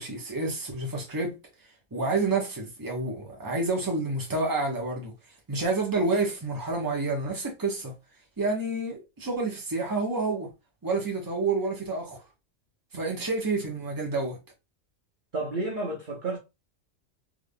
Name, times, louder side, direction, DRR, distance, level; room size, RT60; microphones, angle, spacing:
voice 1, 0.0-1.3 1.9-5.1 5.5-7.9 8.4-10.5 10.8-12.2 12.9-14.4, right 3 dB, 20° right, 1.0 m, -29 dB
voice 2, 15.3-16.4, right 2 dB, 45° right, 0.9 m, -31 dB
3.6 x 3.4 x 2.2 m
omnidirectional pair, 1.3 m